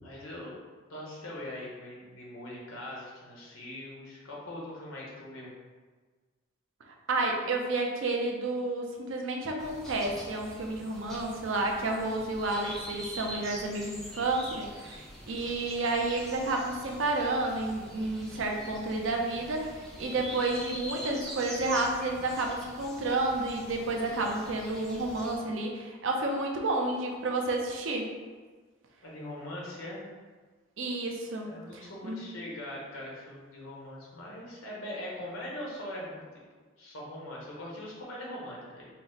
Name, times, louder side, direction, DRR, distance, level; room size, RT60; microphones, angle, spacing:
voice 1, 0.0-0.6 0.9-5.5 29.0-30.0 31.4-36.2 36.8-38.9, left 1 dB, 85° left, -4 dB, 1.1 m, -41 dB
voice 2, 7.1-28.1 30.8-32.3, right 2 dB, 70° right, 1 dB, 0.5 m, -31 dB
sound 1, 9.6-25.4, equal, ahead, 0.4 m, -44 dB
4.3 x 2.1 x 3.9 m, 1.4 s
head